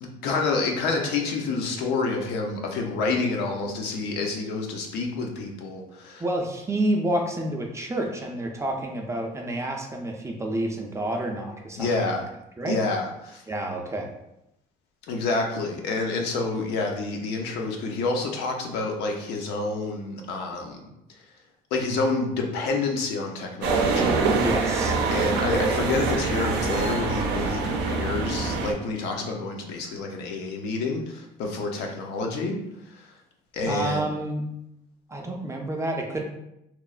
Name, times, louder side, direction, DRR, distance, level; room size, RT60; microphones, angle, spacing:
voice 1, 0.0-6.2 11.8-12.3 12.7-13.4 15.1-20.8 21.7-24.3 25.1-32.6 32.9-33.1 33.5-34.1, left 3 dB, 80° left, 2 dB, 0.5 m, -28 dB
voice 2, 6.2-12.2 12.6-12.8 13.5-14.1 24.4-25.4 33.6-34.4 35.1-36.2, right 1 dB, 15° right, 1 dB, 0.4 m, -29 dB
sound 1, 23.6-28.7, right 4 dB, 85° right, 0.4 m, -24 dB
3.0 x 2.0 x 2.3 m, 0.84 s
cardioid pair, 110°, 17 cm